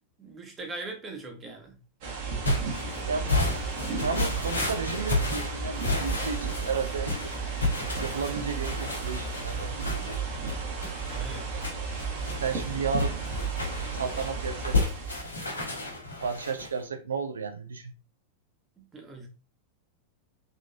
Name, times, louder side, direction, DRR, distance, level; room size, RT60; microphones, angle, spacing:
voice 1, 0.2-1.8 2.9-3.3 10.0-10.1 11.0-11.5 18.8-19.3, right 2 dB, 20° right, 1.1 m, -41 dB
sound 1, 2.0-15.4, right 5 dB, 50° right, 1.4 m, -33 dB
sound 2, 2.4-16.8, left 3 dB, 80° left, 1.1 m, -32 dB
voice 2, 3.9-7.3 8.0-10.3 12.4-13.2 13.9-14.8 16.2-17.9, right 5 dB, 70° right, 0.6 m, -33 dB
3.7 x 3.5 x 2.5 m
figure-of-eight pair, 90°, 0 cm